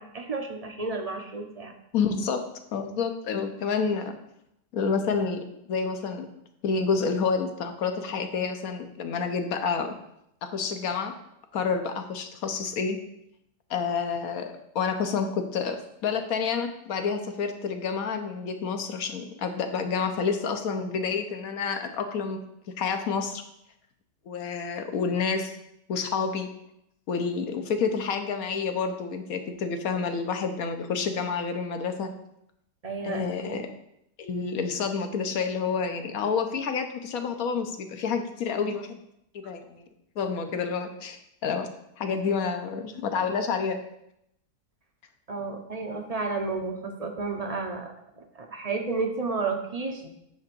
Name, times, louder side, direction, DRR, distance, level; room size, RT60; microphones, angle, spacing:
voice 1, 0.0-1.7 32.8-33.6 45.3-50.1, right 4 dB, 30° right, 3 dB, 0.7 m, -32 dB
voice 2, 1.9-2.4 2.7-4.2 4.7-6.3 6.6-9.9 10.4-11.1 11.5-13.0 13.7-15.8 16.0-22.4 22.8-23.4 24.3-25.6 25.9-26.5 27.1-32.1 33.0-33.7 34.2-39.0 39.3-39.9 40.2-41.7 42.0-43.8, left 5 dB, 60° left, 7 dB, 1.3 m, -29 dB
9.5 x 3.6 x 6.8 m, 0.78 s
omnidirectional pair, 1.8 m